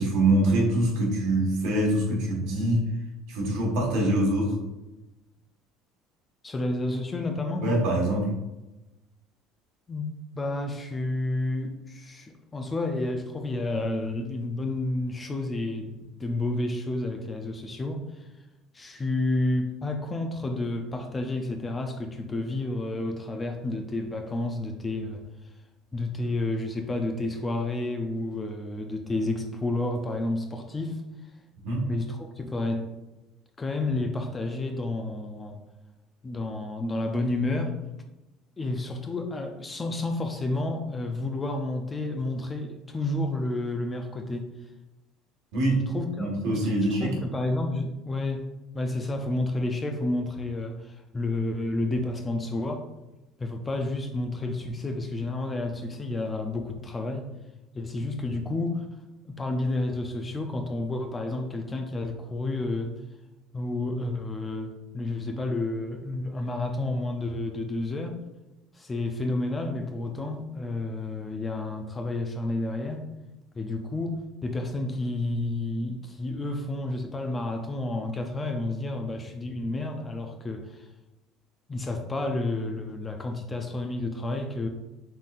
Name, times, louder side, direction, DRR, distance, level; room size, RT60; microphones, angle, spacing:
voice 1, 0.0-2.8 3.3-4.6 7.6-8.3 31.6-31.9 45.5-45.8 46.2-47.1, right 1 dB, 65° right, -1 dB, 1.4 m, -24 dB
voice 2, 6.4-7.7 9.9-10.1 10.3-18.3 18.7-25.2 25.9-31.0 31.8-32.9 33.6-35.6 36.2-37.8 38.6-44.5 45.9-46.3 46.9-48.5 48.7-52.9 53.4-57.3 57.7-58.9 59.3-62.9 63.5-68.2 68.7-73.0 73.5-80.9 81.7-84.7, left 2 dB, 15° left, 4 dB, 0.3 m, -30 dB
5.4 x 3.7 x 2.5 m, 1.0 s
cardioid pair, 180°, 0 cm